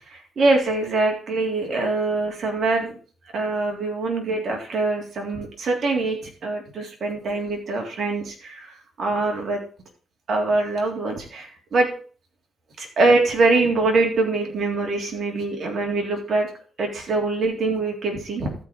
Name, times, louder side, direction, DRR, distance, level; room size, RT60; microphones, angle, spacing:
voice 1, 0.1-3.0 3.3-9.6 10.3-11.9 12.8-16.5 16.8-18.5, right 3 dB, 55° right, 1 dB, 3.4 m, -23 dB
14.0 x 4.9 x 5.3 m, 0.40 s
cardioid pair, 75°, 0 cm